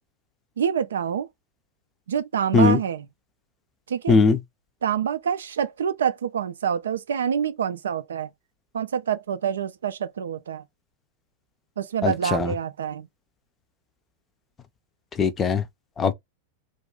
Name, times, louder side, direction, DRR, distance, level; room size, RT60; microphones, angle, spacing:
voice 1, 0.6-1.3 2.1-3.0 3.9-4.2 4.8-8.3 8.7-10.6 11.8-13.1, right 8 dB, 65° right, 0.3 m, -26 dB
voice 2, 4.1-4.4 12.0-12.5 15.2-15.6 16.0-16.1, left 4 dB, 20° left, 0.5 m, -19 dB
2.4 x 2.3 x 3.7 m
figure-of-eight pair, 90°, 0 cm